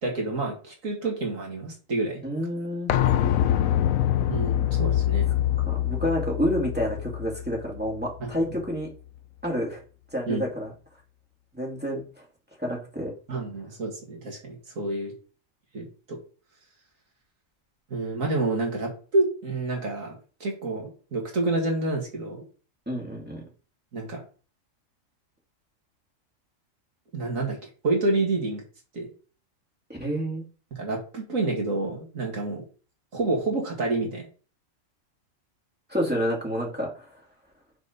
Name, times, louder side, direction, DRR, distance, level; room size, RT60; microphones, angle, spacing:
voice 1, 0.0-2.2 4.3-5.3 8.2-8.6 10.3-10.4 13.3-15.1 15.7-16.2 17.9-22.4 23.9-24.2 27.1-28.6 28.9-29.1 30.7-32.6 33.1-34.3, right 2 dB, 75° right, 0 dB, 2.5 m, -28 dB
voice 2, 2.2-2.9 5.7-8.9 9.4-9.8 10.1-10.7 11.5-12.0 12.6-13.1 22.9-23.4 29.9-30.4 35.9-37.1, equal, 5° right, -3 dB, 2.2 m, -29 dB
sound 1, 2.9-8.5 8.8-8.9, left 11 dB, 80° left, 1.0 m, -25 dB
6.4 x 4.2 x 5.1 m, 0.37 s
omnidirectional pair, 1.4 m